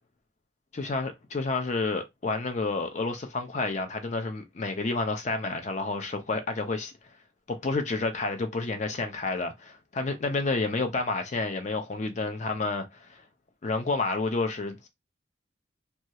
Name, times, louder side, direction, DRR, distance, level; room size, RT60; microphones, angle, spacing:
voice 1, 0.7-6.9 7.5-13.2 13.6-14.9, left 3 dB, 35° left, 0.4 m, -30 dB
2.3 x 2.1 x 2.7 m
head